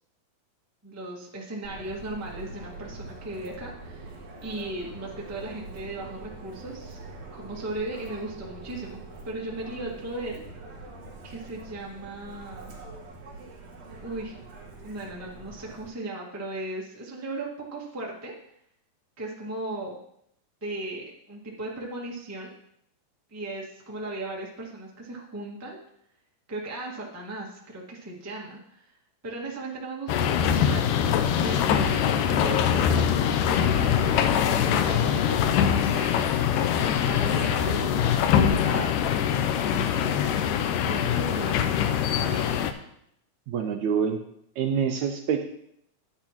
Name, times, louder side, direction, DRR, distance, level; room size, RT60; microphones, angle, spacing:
voice 1, 0.8-7.0 7.3-9.0 9.2-10.4 11.2-12.7 14.0-14.4 14.8-18.3 19.2-20.0 20.6-22.5 23.3-25.8 26.5-28.9 29.2-36.1 36.7-38.9 39.3-39.5 39.9-41.6 42.1-42.6, right 2 dB, 10° right, -3 dB, 0.7 m, -37 dB
Subway metro underground, 1.6-15.9, right 3 dB, 60° right, 2.7 m, -43 dB
sound 1, 30.1-42.7, left 8 dB, 85° left, 2.2 m, -23 dB
voice 2, 43.5-44.2 44.6-45.5, right 7 dB, 80° right, 5 dB, 1.8 m, -26 dB
10.5 x 9.9 x 3.0 m, 0.73 s
omnidirectional pair, 3.8 m